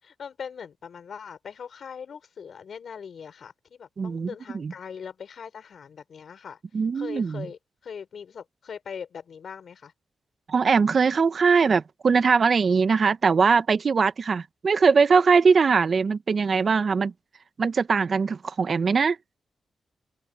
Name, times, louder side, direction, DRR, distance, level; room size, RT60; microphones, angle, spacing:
voice 1, 0.0-6.6 6.9-9.9, left 7 dB, 65° left, 4.4 m, -41 dB
voice 2, 4.0-4.7 6.7-7.5 10.5-17.1 17.6-19.2, right 5 dB, 55° right, 0.9 m, -21 dB
open air
cardioid pair, 70°, 0 cm